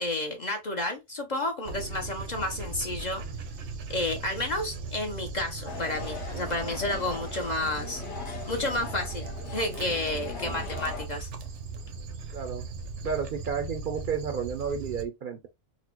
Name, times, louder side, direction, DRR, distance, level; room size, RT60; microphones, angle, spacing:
voice 1, 0.0-3.2 3.9-8.0 8.5-11.3, left 2 dB, 45° left, 0.7 m, -31 dB
Dog, 1.6-15.0, right 4 dB, 75° right, 0.9 m, -38 dB
sound 1, 5.7-11.1, left 6 dB, 70° left, 1.1 m, -40 dB
voice 2, 12.3-12.7 13.0-15.5, right 6 dB, 60° right, 0.6 m, -32 dB
4.0 x 2.1 x 2.9 m
omnidirectional pair, 1.2 m